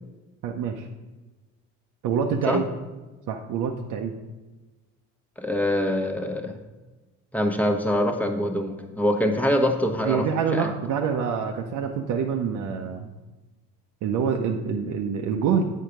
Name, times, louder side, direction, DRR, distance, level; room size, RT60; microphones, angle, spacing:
voice 1, 0.4-0.9 2.0-2.6 3.3-4.1 10.0-13.1 14.0-15.6, right 6 dB, 75° right, 1 dB, 0.7 m, -26 dB
voice 2, 5.4-6.5 7.3-10.7, left 1 dB, 5° left, 4 dB, 1.0 m, -24 dB
8.2 x 4.6 x 5.0 m, 1.2 s
cardioid pair, 85°, 31 cm